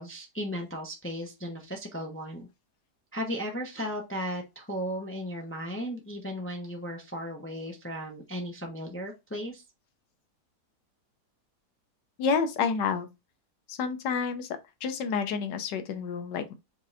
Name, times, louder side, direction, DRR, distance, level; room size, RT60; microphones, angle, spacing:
voice 1, 0.0-2.5 3.1-9.6, equal, 20° left, 0.3 m, -36 dB
voice 2, 12.2-13.1 13.7-14.5 14.8-16.5, left 5 dB, 85° left, 1.4 m, -29 dB
5.2 x 3.1 x 2.6 m
omnidirectional pair, 1.8 m